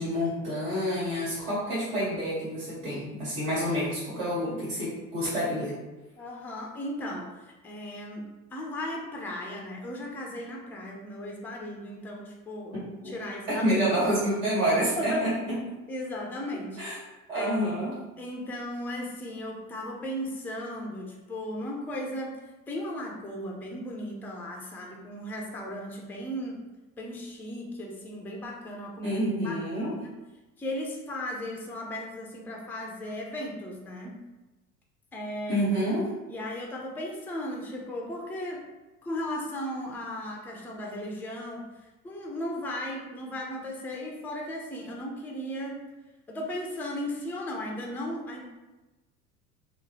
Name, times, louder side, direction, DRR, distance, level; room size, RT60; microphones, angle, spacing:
voice 1, 0.0-5.7 13.0-13.1 13.5-15.3 16.8-17.0 17.3-17.9 29.0-29.9 35.5-36.1, equal, 65° right, -8 dB, 1.5 m, -28 dB
voice 2, 6.2-13.8 15.0-15.2 15.9-16.8 17.3-17.6 18.2-22.3 22.7-26.6 27.0-29.2 29.4-30.1 30.6-34.2 35.1-35.6 36.3-38.6 39.0-45.8 46.3-48.4, left 1 dB, 5° left, -1 dB, 0.4 m, -36 dB
3.0 x 2.1 x 2.8 m, 1.1 s
hypercardioid pair, 70°, 44 cm